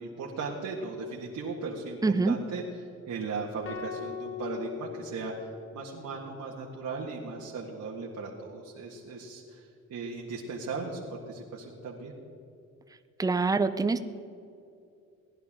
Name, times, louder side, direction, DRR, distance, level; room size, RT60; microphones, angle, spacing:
voice 1, 0.0-12.1, right 4 dB, 65° right, -3 dB, 1.8 m, -37 dB
voice 2, 2.0-2.3 13.2-14.0, right 3 dB, 10° right, 10 dB, 0.6 m, -25 dB
sound 1, 3.6-6.0, left 8 dB, 45° left, 1.4 m, -40 dB
18.0 x 11.0 x 3.7 m, 2.6 s
cardioid pair, 90°, 30 cm